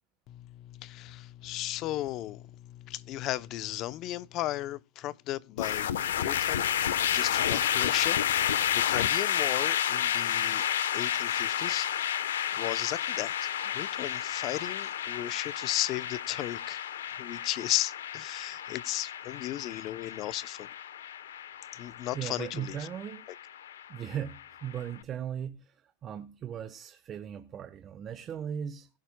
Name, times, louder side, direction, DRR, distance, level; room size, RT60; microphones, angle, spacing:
voice 1, 0.3-10.6 10.9-12.3 12.5-16.8 17.2-20.7 21.7-22.9, left 15 dB, 45° left, 0.8 m, -35 dB
sound 1, 5.6-24.8, left 10 dB, 90° left, 1.1 m, -31 dB
voice 2, 22.1-23.2 23.9-28.9, right 9 dB, 35° right, 1.1 m, -38 dB
22.0 x 11.5 x 2.3 m
hypercardioid pair, 115°, 0 cm